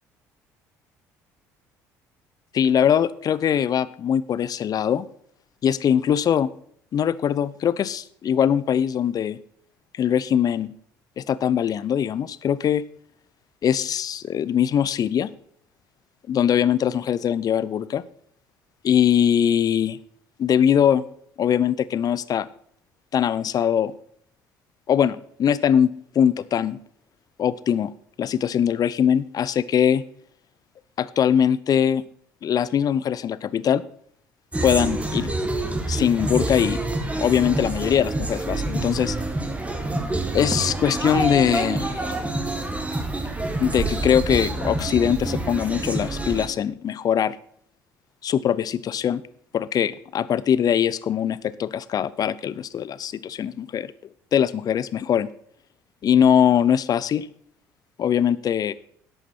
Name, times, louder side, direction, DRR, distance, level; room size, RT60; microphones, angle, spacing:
voice 1, 2.5-5.1 5.6-6.5 6.9-9.4 9.9-10.7 11.2-12.8 13.6-15.3 16.3-18.0 18.8-20.0 20.4-21.1 21.4-22.5 23.1-23.9 24.9-26.8 27.4-27.9 28.2-30.0 31.0-32.0 32.4-33.8 34.6-35.3 35.9-36.8 37.2-39.2 40.3-42.2 43.6-47.4 48.2-49.2 49.5-53.9 54.3-55.3 56.0-57.3 58.0-58.7, left 9 dB, 45° left, 17 dB, 0.6 m, -21 dB
sound 1, 34.5-46.5, right 2 dB, 15° right, 1.8 m, -27 dB
11.5 x 8.1 x 4.3 m, 0.63 s
hypercardioid pair, 60°, 9 cm